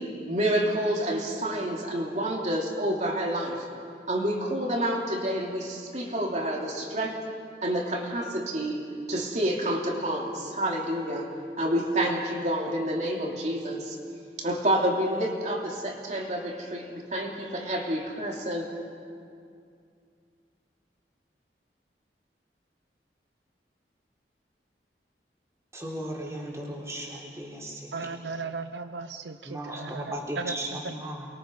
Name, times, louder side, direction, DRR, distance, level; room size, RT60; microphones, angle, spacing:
voice 1, 0.0-3.7 4.1-7.2 7.6-8.8 9.1-11.3 11.6-14.0 14.4-18.7, right 1 dB, 40° right, -1 dB, 3.0 m, -28 dB
voice 2, 25.7-27.8 29.5-31.3, right 1 dB, 15° right, -3 dB, 3.8 m, -36 dB
voice 3, 27.9-30.9, right 4 dB, 85° right, 9 dB, 0.7 m, -36 dB
29.0 x 22.5 x 5.3 m, 2.4 s
head